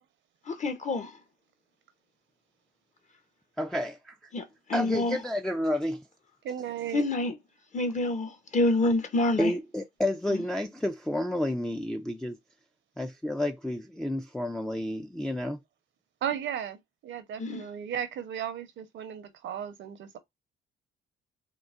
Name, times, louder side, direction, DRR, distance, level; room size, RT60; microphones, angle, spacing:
voice 1, 0.5-1.2 4.3-4.4 4.7-5.2 6.9-7.3 7.7-9.5 10.3-10.4 17.4-17.7, left 2 dB, 35° left, 0.8 m, -27 dB
voice 2, 3.6-4.1 4.7-6.0 9.4-12.4 13.0-15.6, left 1 dB, 5° left, 0.3 m, -30 dB
voice 3, 6.4-7.0 16.2-20.2, right 9 dB, 70° right, 0.7 m, -35 dB
3.7 x 2.1 x 2.4 m
cardioid pair, 90°, 20 cm